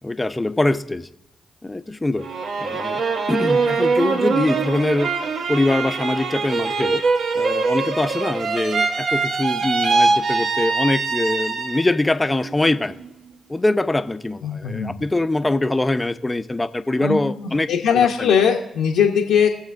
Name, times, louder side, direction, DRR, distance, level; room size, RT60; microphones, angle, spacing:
voice 1, 0.0-1.1 1.6-2.3 2.6-3.0 3.3-5.1 5.5-7.0 7.3-13.0 13.5-18.3, left 2 dB, 20° left, 0.7 m, -23 dB
sound 1, 2.2-12.0 12.4-13.1, right 4 dB, 65° right, 0.8 m, -23 dB
voice 2, 14.4-14.9 17.0-19.5, left 7 dB, 80° left, 0.8 m, -20 dB
20.5 x 7.3 x 2.6 m
hypercardioid pair, 40°, 0 cm